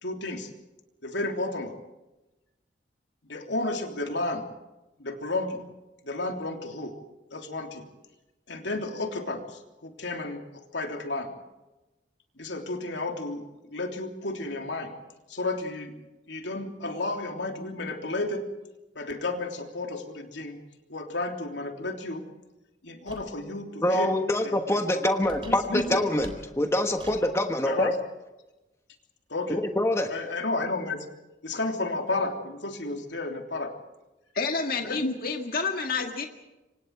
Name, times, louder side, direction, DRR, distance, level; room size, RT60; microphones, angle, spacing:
voice 1, 0.0-0.5 1.0-1.8 3.3-4.5 5.0-5.6 6.0-7.0 7.3-7.9 8.5-10.4 10.7-11.3 12.4-14.9 15.3-15.9 16.3-18.4 18.9-20.6 20.9-22.2 22.8-24.1 24.4-24.8 25.4-26.0 27.6-28.0 29.3-29.6 30.1-31.1 31.4-33.7 34.9-35.1, left 2 dB, 75° left, 3 dB, 3.2 m, -32 dB
sound 1, 23.1-23.4 25.2-27.3, right 1 dB, 30° right, 3.5 m, -44 dB
voice 2, 23.8-27.9 29.5-30.1, left 1 dB, 15° left, 5 dB, 1.3 m, -25 dB
voice 3, 34.3-36.3, left 4 dB, 50° left, 3 dB, 1.9 m, -29 dB
27.5 x 25.0 x 4.8 m, 1.0 s
head